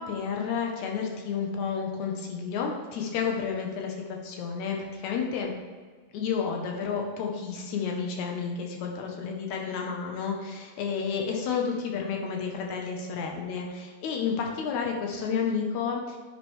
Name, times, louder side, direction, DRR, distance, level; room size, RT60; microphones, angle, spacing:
voice 1, 0.0-5.5 6.1-16.2, left 6 dB, 85° left, 1 dB, 1.6 m, -31 dB
10.5 x 6.5 x 3.1 m, 1.5 s
omnidirectional pair, 4.4 m